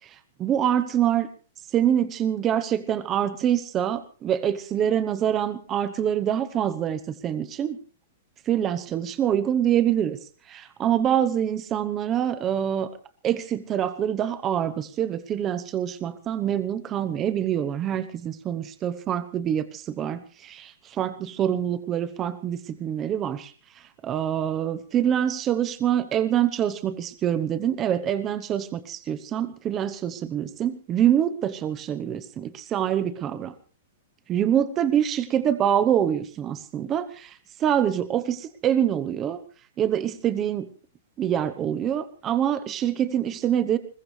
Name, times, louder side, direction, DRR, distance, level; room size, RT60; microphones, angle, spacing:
voice 1, 0.4-1.3 1.7-7.8 8.5-10.2 10.5-12.9 13.2-23.5 24.0-33.5 34.3-37.3 37.6-39.4 39.8-40.7 41.2-43.8, right 10 dB, 15° right, 11 dB, 0.9 m, -25 dB
21.5 x 20.5 x 3.3 m, 0.38 s
hypercardioid pair, 180°, 0 cm